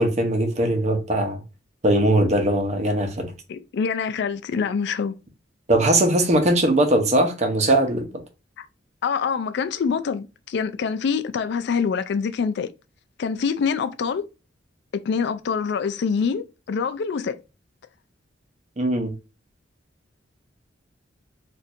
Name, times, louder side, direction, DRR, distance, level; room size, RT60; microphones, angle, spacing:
voice 1, 0.0-1.4 1.8-3.3 5.7-8.1 18.8-19.1, right 1 dB, 40° right, 0.8 m, -20 dB
voice 2, 3.5-5.1 8.6-8.7 9.0-12.7 13.2-14.2 15.1-17.4, left 6 dB, 65° left, 0.4 m, -25 dB
4.3 x 2.5 x 2.5 m
head